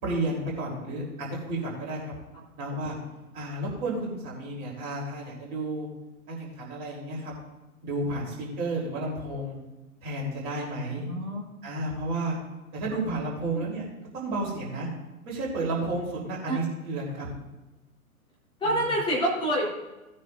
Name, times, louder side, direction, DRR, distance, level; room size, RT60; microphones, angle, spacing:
voice 1, 0.0-2.1 2.6-3.0 3.3-5.9 6.3-7.3 7.8-9.6 10.0-11.1 11.6-12.4 12.7-13.8 14.1-14.9 15.2-17.3 18.7-18.8, right 2 dB, 35° right, -3 dB, 4.0 m, -32 dB
voice 2, 2.3-2.7 10.9-11.4 13.5-13.6 16.5-16.6 18.6-19.7, right 1 dB, 10° left, -5 dB, 4.0 m, -28 dB
18.0 x 9.4 x 2.7 m, 1.0 s
figure-of-eight pair, 120°, 43 cm